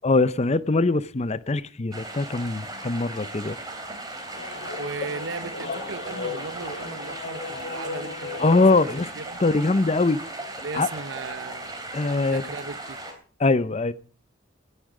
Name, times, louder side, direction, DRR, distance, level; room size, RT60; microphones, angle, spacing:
voice 1, 0.0-3.6 8.4-9.1 9.4-10.2 10.7-10.9 11.9-12.4 13.4-13.9, left 3 dB, 30° left, 0.6 m, -22 dB
sound 1, 1.9-13.1, right 2 dB, 20° right, 3.3 m, -37 dB
sound 2, 4.3-9.0, left 4 dB, 55° left, 1.8 m, -36 dB
voice 2, 4.8-9.4 10.6-11.8 12.3-13.0, right 4 dB, 65° right, 0.6 m, -37 dB
17.0 x 10.0 x 4.9 m
head